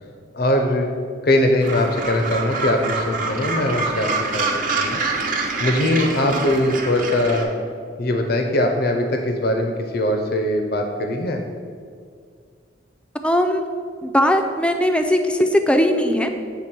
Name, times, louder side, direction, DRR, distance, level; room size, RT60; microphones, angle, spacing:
voice 1, 0.3-0.9 1.2-4.4 4.8-5.0 5.6-7.5 8.0-11.4, left 1 dB, 60° left, 4 dB, 0.7 m, -21 dB
Gull seagull, 1.6-7.4, right 3 dB, 50° right, 0.8 m, -26 dB
voice 2, 13.2-13.6 14.0-16.3, equal, 5° left, 6 dB, 0.5 m, -19 dB
8.0 x 3.5 x 6.0 m, 2.1 s
head